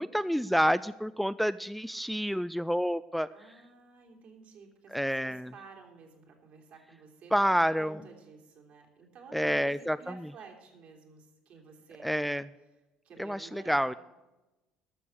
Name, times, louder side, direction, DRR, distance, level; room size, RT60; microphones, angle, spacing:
voice 1, 0.0-3.3 4.9-5.5 7.3-8.0 9.3-10.3 12.0-12.5 13.2-13.9, equal, ahead, 15 dB, 0.3 m, -29 dB
voice 2, 3.3-7.3 7.7-12.4 13.0-14.0, right 5 dB, 60° right, 1 dB, 3.0 m, -52 dB
12.5 x 6.9 x 8.3 m, 1.1 s
hypercardioid pair, 60°, 3 cm